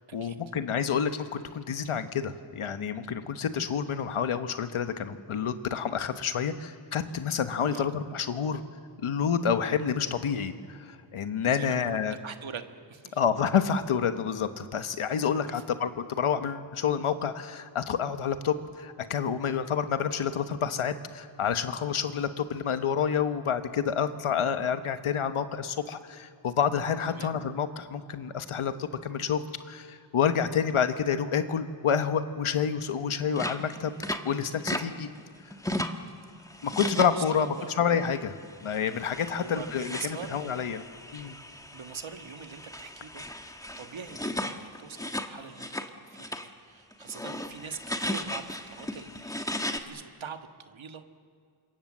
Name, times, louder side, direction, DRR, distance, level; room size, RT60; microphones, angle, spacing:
voice 1, 0.1-8.6 9.0-12.2 13.1-33.9 34.2-35.1 36.6-40.8 41.1-41.3, left 7 dB, 90° left, 10 dB, 1.3 m, -29 dB
voice 2, 11.5-12.0 12.2-13.2 15.4-15.5 27.1-27.3 37.1-37.7 39.3-40.6 41.7-45.7 46.0-51.0, right 6 dB, 70° right, 7 dB, 1.6 m, -43 dB
sound 1, 33.3-34.8 35.2-36.1 36.5-37.6 37.9-38.2 38.6-45.9 46.1-46.5 46.9-49.8, left 1 dB, 5° left, 1.3 m, -36 dB
26.0 x 24.0 x 7.4 m, 2.3 s
wide cardioid pair, 95°, 49 cm